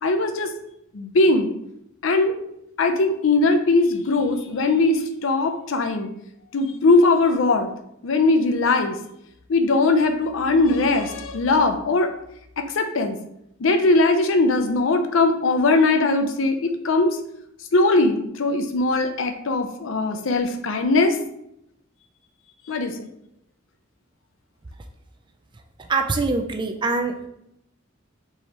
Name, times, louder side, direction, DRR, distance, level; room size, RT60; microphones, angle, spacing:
voice 1, 0.0-0.5 0.9-1.5 2.0-2.4 2.8-6.1 6.5-7.7 8.0-9.0 9.5-12.1 12.6-13.2 13.6-17.2 17.7-21.2 22.7-23.0, left 3 dB, 80° left, 6 dB, 0.5 m, -20 dB
voice 2, 25.9-27.3, right 3 dB, 25° right, 6 dB, 0.4 m, -24 dB
4.6 x 3.3 x 2.9 m, 0.79 s
head